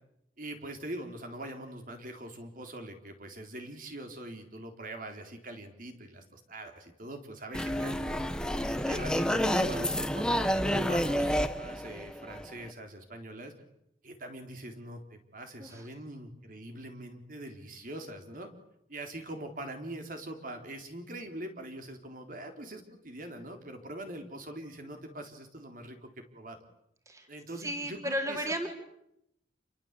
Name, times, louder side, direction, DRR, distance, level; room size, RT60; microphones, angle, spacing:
voice 1, 0.4-8.2 8.9-13.5 14.0-18.5 18.9-26.6 27.3-28.5, right 1 dB, 50° right, 5 dB, 3.9 m, -42 dB
sound 1, 7.5-12.7, equal, 5° left, 1.4 m, -29 dB
voice 2, 27.6-28.7, equal, 20° right, 4 dB, 4.1 m, -34 dB
29.0 x 23.5 x 8.3 m, 0.82 s
head